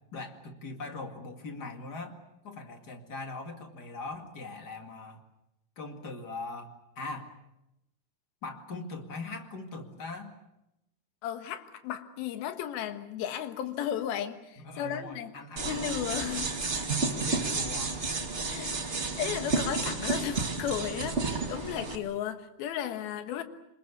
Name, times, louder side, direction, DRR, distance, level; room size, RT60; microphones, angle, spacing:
voice 1, 0.1-2.2 2.4-5.2 5.8-7.3 8.4-10.3 14.6-15.7 16.7-18.0, left 3 dB, 35° left, 1.9 m, -41 dB
voice 2, 11.2-15.3 15.7-16.6 18.5-23.4, left 10 dB, 75° left, 3.1 m, -35 dB
Scissors Spinning on Finger, 15.6-22.0, right 3 dB, 25° right, 1.8 m, -31 dB
26.0 x 21.5 x 8.3 m
omnidirectional pair, 4.6 m